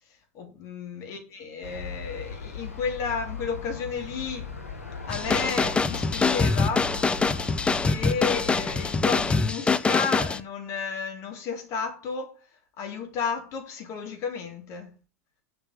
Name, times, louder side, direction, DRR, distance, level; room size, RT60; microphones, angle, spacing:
voice 1, 0.3-4.5 5.1-6.9 7.8-12.4 12.8-14.9, left 5 dB, 45° left, 3.2 m, -32 dB
Aircraft, 1.6-9.5, left 4 dB, 85° left, 1.9 m, -38 dB
sound 1, 5.1-10.4, left 4 dB, 15° left, 0.6 m, -24 dB
7.6 x 6.0 x 6.6 m
figure-of-eight pair, 85°, 8 cm